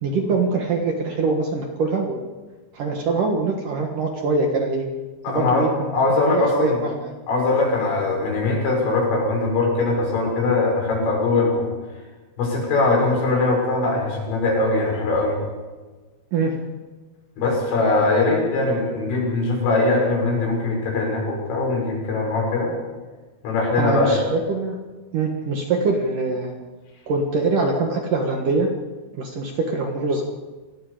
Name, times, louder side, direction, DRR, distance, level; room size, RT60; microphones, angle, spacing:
voice 1, 0.0-2.3 2.7-4.9 5.3-5.7 6.3-7.1 16.3-16.6 23.7-24.8 25.1-26.5 27.1-28.7 29.2-30.2, right 3 dB, 60° right, 2 dB, 2.4 m, -23 dB
voice 2, 5.2-5.7 5.9-6.8 7.3-11.6 12.4-15.4 17.4-22.7 23.4-24.2, left 3 dB, 85° left, -1 dB, 9.1 m, -21 dB
28.5 x 20.0 x 5.1 m, 1.3 s
omnidirectional pair, 5.7 m